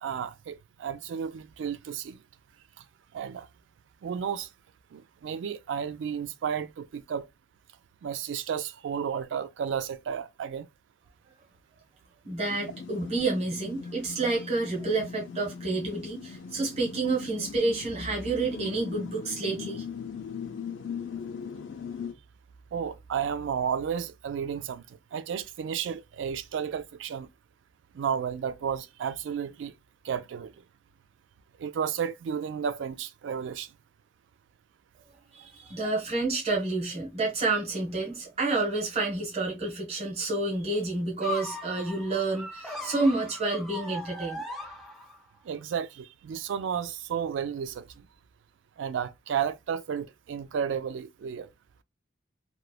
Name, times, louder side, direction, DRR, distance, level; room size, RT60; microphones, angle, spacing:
voice 1, 0.0-2.2 3.1-3.5 4.0-4.5 4.9-7.3 8.0-10.7 22.7-27.3 27.9-29.7 30.0-30.5 31.6-33.7 45.4-47.9 48.8-51.5, right 7 dB, 80° right, 0.3 m, -32 dB
voice 2, 12.2-19.8 35.3-44.4, right 3 dB, 35° right, 0.9 m, -29 dB
sound 1, 12.4-22.1, left 6 dB, 85° left, 0.4 m, -40 dB
sound 2, 41.2-45.4, left 2 dB, ahead, 0.4 m, -39 dB
3.0 x 2.0 x 2.2 m
head